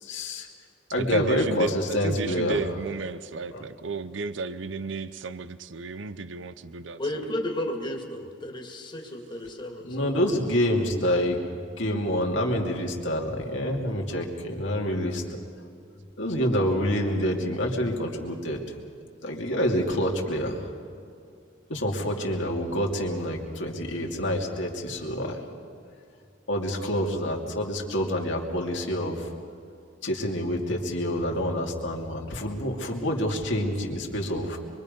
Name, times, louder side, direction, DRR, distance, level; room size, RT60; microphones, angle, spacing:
voice 1, 0.0-0.5 0.9-2.6 3.5-3.7 9.8-11.4 11.8-15.2 16.2-18.6 19.2-20.6 21.7-25.4 26.5-29.3 30.0-34.6, equal, 70° left, 0 dB, 2.8 m, -27 dB
voice 2, 1.0-1.7 2.0-7.3, right 4 dB, 70° right, 13 dB, 0.7 m, -33 dB
voice 3, 7.0-10.4, left 1 dB, 25° left, 1 dB, 2.3 m, -33 dB
25.0 x 23.5 x 5.4 m, 2.4 s
head